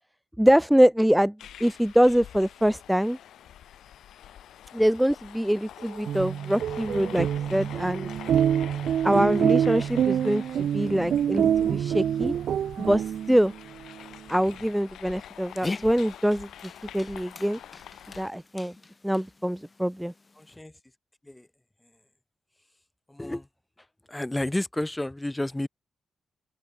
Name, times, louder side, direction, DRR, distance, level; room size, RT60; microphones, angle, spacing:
voice 1, 0.4-3.2 4.7-8.1 9.0-12.3 12.8-13.5 14.3-16.5 16.9-17.6 18.2-18.7 19.0-20.1, equal, 5° right, 0.6 m, -24 dB
sound 1, 1.4-18.3, left 11 dB, 85° left, 6.2 m, -46 dB
sound 2, 5.9-13.5, right 9 dB, 80° right, 1.2 m, -26 dB
Dog, 15.2-20.6, left 3 dB, 35° left, 1.8 m, -42 dB
voice 2, 20.4-20.7 21.2-21.5 23.1-23.5 24.1-25.7, left 1 dB, 15° left, 2.0 m, -31 dB
open air
supercardioid pair, 55°, 0 cm